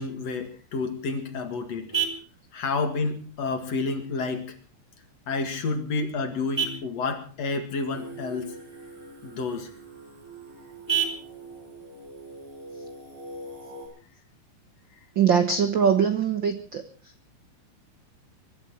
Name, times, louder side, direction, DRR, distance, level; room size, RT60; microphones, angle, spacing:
voice 1, 0.0-1.9 2.5-4.5 5.3-8.5 9.2-9.7, left 4 dB, 50° left, 7 dB, 2.8 m, -30 dB
Vehicle horn car horn honking, 0.7-13.7, right 7 dB, 5° right, 3.3 m, -37 dB
Singing, 7.9-13.9, right 2 dB, 50° right, 9.1 m, -43 dB
voice 2, 15.1-17.1, right 7 dB, 80° right, 8 dB, 1.0 m, -22 dB
24.5 x 12.5 x 4.6 m, 0.39 s
omnidirectional pair, 4.1 m